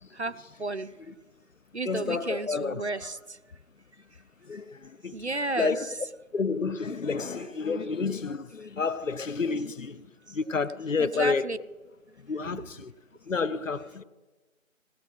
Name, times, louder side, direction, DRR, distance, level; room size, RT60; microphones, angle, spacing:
voice 1, 0.1-0.9 1.7-3.2 5.1-5.9 11.0-11.6 12.4-12.6, right 2 dB, 55° right, 0.5 m, -32 dB
voice 2, 1.9-2.8 4.4-5.2 5.5-5.9 6.3-11.5 12.3-12.9 13.3-14.0, left 4 dB, 70° left, 0.7 m, -30 dB
17.0 x 8.5 x 6.0 m
figure-of-eight pair, 180°, 40 cm